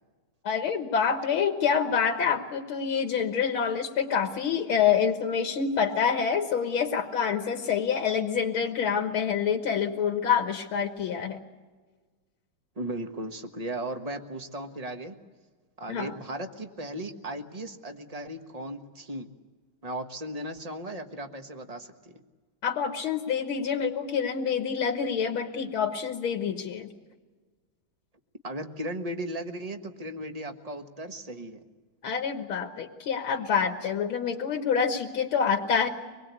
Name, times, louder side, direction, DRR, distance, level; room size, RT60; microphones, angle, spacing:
voice 1, 0.4-11.4 15.9-16.1 22.6-26.9 32.0-35.9, left 7 dB, 85° left, 5 dB, 2.2 m, -27 dB
voice 2, 12.8-15.2 15.8-19.3 19.8-22.1 28.4-31.6, right 1 dB, 20° right, 6 dB, 1.2 m, -36 dB
25.0 x 20.5 x 8.4 m, 1.4 s
omnidirectional pair, 2.3 m